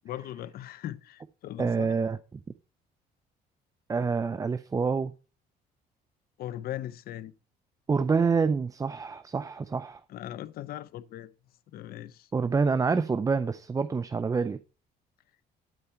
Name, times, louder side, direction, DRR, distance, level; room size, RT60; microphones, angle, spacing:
voice 1, 0.0-1.9 6.4-7.3 10.1-11.3 11.7-12.3, left 12 dB, 65° left, 0.7 m, -39 dB
voice 2, 1.6-2.4 3.9-5.1 7.9-10.0 12.3-14.6, right 5 dB, 20° right, 0.5 m, -27 dB
12.0 x 4.3 x 5.6 m
cardioid pair, 110°, 17 cm